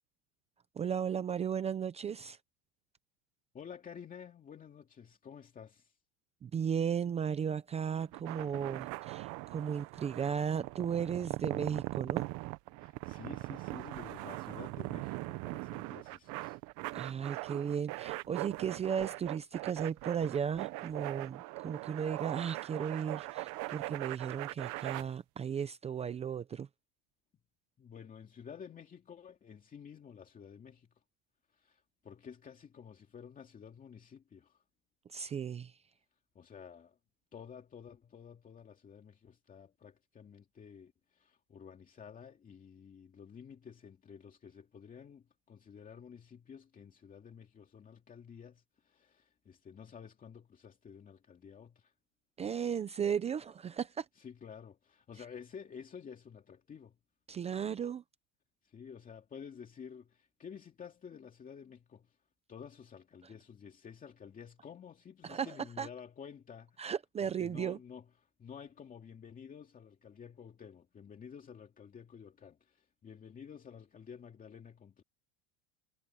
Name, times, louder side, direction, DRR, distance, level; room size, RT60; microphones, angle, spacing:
voice 1, 0.8-2.4 6.4-12.3 16.9-26.7 35.1-35.7 52.4-54.1 57.3-58.0 65.2-65.9 66.8-67.8, right 7 dB, 15° right, 0.5 m, -35 dB
voice 2, 3.5-6.0 12.8-16.6 27.8-30.9 31.5-34.6 36.3-37.0 37.3-51.9 54.2-57.0 58.6-62.2 62.5-66.9 67.2-68.1 68.4-75.0, left 7 dB, 20° left, 2.4 m, -51 dB
sound 1, 8.0-25.0, right 21 dB, 45° right, 1.0 m, -40 dB
supercardioid pair, 155°, 43 cm